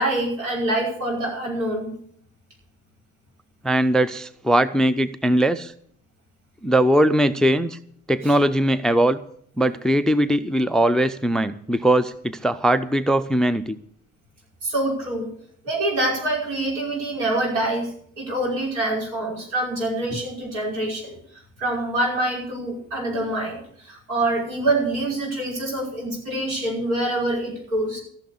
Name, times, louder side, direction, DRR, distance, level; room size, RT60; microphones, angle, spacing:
voice 1, 0.0-1.9 8.2-8.3 14.6-15.3 15.6-21.2 21.6-28.0, right 1 dB, 75° right, -3 dB, 5.6 m, -25 dB
voice 2, 3.6-5.7 6.6-7.8 8.1-9.2 9.6-13.8, right 1 dB, ahead, 16 dB, 0.5 m, -20 dB
15.0 x 6.6 x 8.5 m, 0.64 s
figure-of-eight pair, 50°, 40 cm